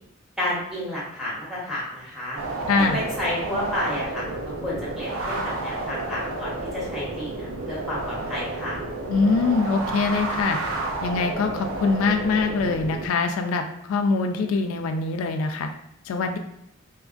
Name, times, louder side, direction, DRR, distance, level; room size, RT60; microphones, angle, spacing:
voice 1, 0.4-2.4 2.8-4.3 4.6-8.8, left 1 dB, ahead, -7 dB, 0.9 m, -31 dB
sound 1, 2.4-13.1, right 2 dB, 80° right, 0.5 m, -31 dB
voice 2, 2.7-3.0 9.1-10.6 11.0-15.7 16.1-16.4, left 4 dB, 85° left, 6 dB, 0.3 m, -23 dB
2.8 x 2.3 x 2.4 m, 0.74 s
head